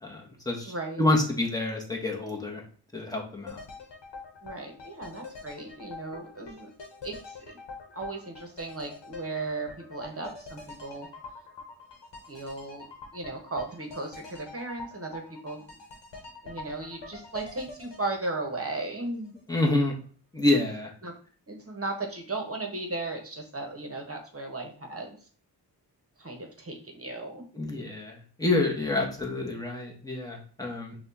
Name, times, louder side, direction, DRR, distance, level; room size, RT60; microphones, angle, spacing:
voice 1, 0.0-2.6 2.9-3.6 19.5-19.9 20.3-20.9 27.5-30.9, left 2 dB, 10° left, -1 dB, 1.1 m, -28 dB
voice 2, 0.6-1.0 4.4-6.7 7.0-7.6 7.9-11.1 12.3-15.7 16.4-19.3 21.0-21.1 21.5-25.2 26.2-27.5, right 2 dB, 35° right, 2 dB, 1.1 m, -36 dB
sound 1, 3.5-19.4 19.7-19.8, left 3 dB, 80° left, 1.0 m, -45 dB
5.9 x 2.4 x 2.8 m, 0.43 s
wide cardioid pair, 60°, 43 cm